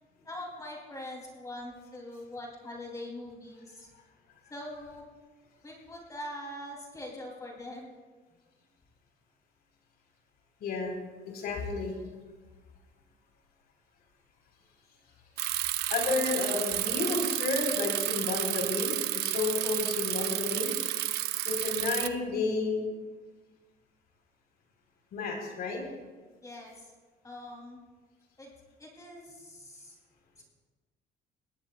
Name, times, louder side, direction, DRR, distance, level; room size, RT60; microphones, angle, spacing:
voice 1, 0.2-3.9 4.5-5.1 5.6-7.9 26.4-26.9 27.2-27.8 28.4-28.5 28.8-30.0 30.4-30.5, left 1 dB, 20° left, -1 dB, 3.2 m, -43 dB
voice 2, 10.6-11.0 11.3-12.0 15.9-20.7 21.4-22.8 25.1-25.8, left 3 dB, 70° left, 0 dB, 4.3 m, -31 dB
Bicycle, 15.4-22.1, right 14 dB, 75° right, 0.6 m, -31 dB
21.5 x 17.5 x 2.4 m, 1.4 s
cardioid pair, 110°, 17 cm